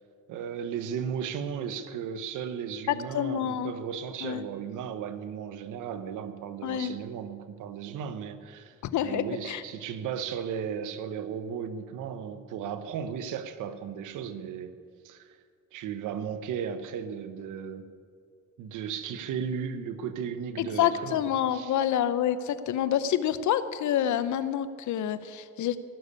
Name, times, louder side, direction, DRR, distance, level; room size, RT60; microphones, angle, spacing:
voice 1, 0.3-8.7 9.0-14.8 15.0-15.4 15.7-17.9 18.6-21.2 21.5-21.8, right 7 dB, 85° right, 1.1 m, -35 dB
voice 2, 2.9-3.7 4.2-4.5 6.6-7.0 8.8-9.6 20.6-25.8, left 10 dB, 75° left, 0.9 m, -28 dB
17.0 x 6.8 x 9.8 m
cardioid pair, 90°, 30 cm